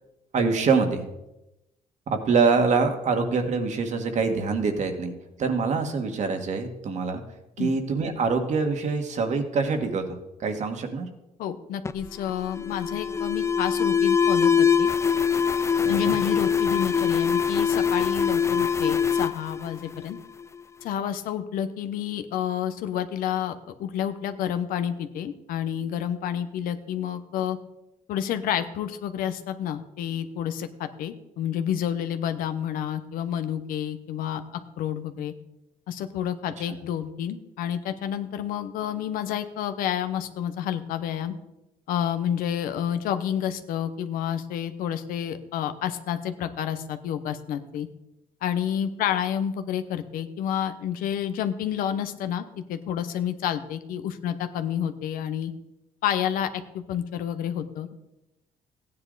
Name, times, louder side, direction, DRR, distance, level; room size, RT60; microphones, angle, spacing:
voice 1, 0.3-1.1 2.1-5.1 5.4-7.2 7.6-11.1 15.8-16.2 36.7-36.8, right 4 dB, 55° right, 5 dB, 1.8 m, -25 dB
voice 2, 11.4-14.9 15.9-20.2 20.8-27.6 28.1-35.3 35.9-41.3 41.9-47.9 48.4-55.5 56.0-57.9, left 9 dB, 85° left, 10 dB, 0.9 m, -29 dB
Alarm, 11.8-20.4, left 6 dB, 20° left, 0.4 m, -23 dB
15.0 x 9.8 x 4.0 m, 0.93 s
cardioid pair, 95°, 14 cm